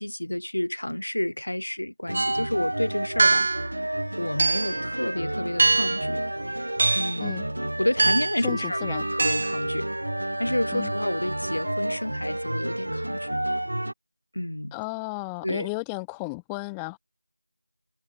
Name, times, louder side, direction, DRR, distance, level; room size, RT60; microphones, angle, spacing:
voice 1, 0.0-3.5 4.2-6.2 6.9-9.9 10.4-13.4 14.3-14.7 15.4-15.7, left 1 dB, 70° left, 2.3 m, -30 dB
sound 1, 2.1-2.4 3.2-3.7 4.4-4.8 5.6-6.1 6.8-7.2 8.0-8.4 9.2-9.6, right 3 dB, 30° right, 1.1 m, -23 dB
sound 2, 2.1-13.9, right 1 dB, 65° right, 1.4 m, -30 dB
voice 2, 8.4-9.0 10.7-10.9 14.7-17.0, left 30 dB, 5° left, 1.0 m, -34 dB
figure-of-eight pair, 170°, 0 cm